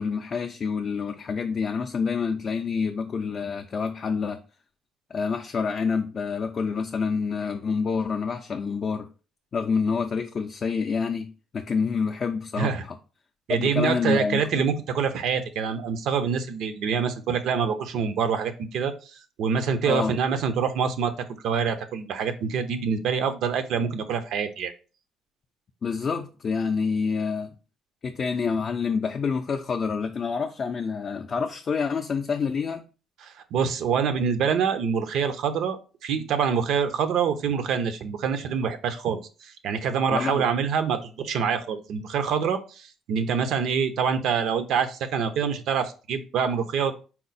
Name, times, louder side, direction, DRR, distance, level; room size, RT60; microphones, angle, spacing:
voice 1, 0.0-4.4 5.1-9.1 9.5-13.0 13.5-14.7 19.8-20.2 25.8-27.5 28.0-32.8 40.1-40.4, left 5 dB, 40° left, 0.3 m, -27 dB
voice 2, 13.5-21.1 21.4-24.7 33.2-46.9, right 6 dB, 70° right, 0.5 m, -26 dB
4.2 x 2.0 x 3.9 m
cardioid pair, 110°, 0 cm